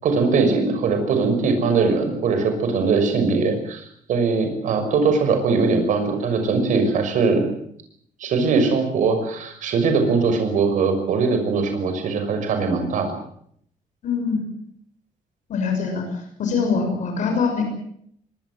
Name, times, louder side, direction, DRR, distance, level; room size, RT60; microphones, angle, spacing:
voice 1, 0.0-7.5 8.2-13.1, right 4 dB, 65° right, 6 dB, 6.1 m, -21 dB
voice 2, 14.0-14.4 15.5-17.6, left 5 dB, 60° left, 4 dB, 6.5 m, -23 dB
24.0 x 20.0 x 7.7 m, 0.67 s
cardioid pair, 175°, 14 cm